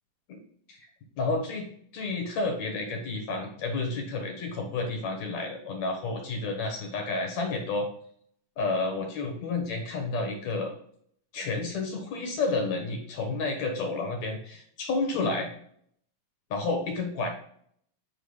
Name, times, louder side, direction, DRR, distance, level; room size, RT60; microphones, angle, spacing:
voice 1, 1.2-7.9 8.6-10.7 11.3-15.5 16.5-17.3, left 3 dB, 65° left, 3 dB, 2.2 m, -30 dB
8.1 x 3.6 x 5.4 m, 0.64 s
omnidirectional pair, 3.7 m